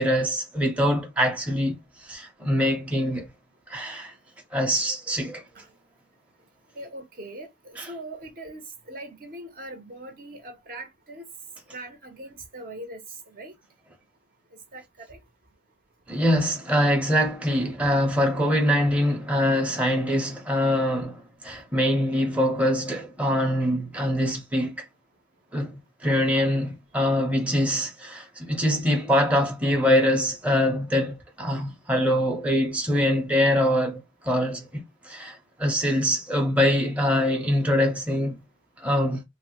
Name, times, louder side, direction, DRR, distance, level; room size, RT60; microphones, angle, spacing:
voice 1, 0.0-3.3 3.7-4.1 4.5-5.4 7.8-7.9 16.1-24.8 25.5-38.4 38.8-39.2, equal, 10° right, 0.7 m, -24 dB
voice 2, 6.8-7.5 7.9-8.6 8.9-11.2 11.7-13.0 13.4-13.5 14.7-14.8 15.1-15.2, right 1 dB, 50° right, 0.8 m, -40 dB
3.2 x 2.1 x 2.9 m
head